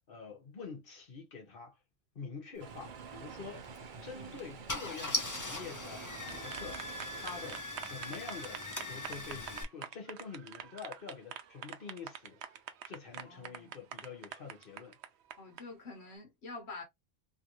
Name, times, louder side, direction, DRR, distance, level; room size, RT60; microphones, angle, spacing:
voice 1, 0.1-1.8 2.1-3.6 4.0-6.8 7.2-12.6 12.9-15.0, left 5 dB, 55° left, 1.3 m, -47 dB
sound 1, 2.6-7.6, right 5 dB, 55° right, 0.8 m, -48 dB
Car / Engine starting, 3.6-3.8 4.4-4.5 4.7-9.6, left 2 dB, 20° left, 0.7 m, -40 dB
voice 2, 4.2-4.5 13.2-13.7 15.4-16.8, left 3 dB, 80° left, 1.4 m, -47 dB
sound 2, 5.9-15.6, right 9 dB, 85° right, 0.9 m, -45 dB
3.1 x 2.7 x 2.9 m
omnidirectional pair, 1.1 m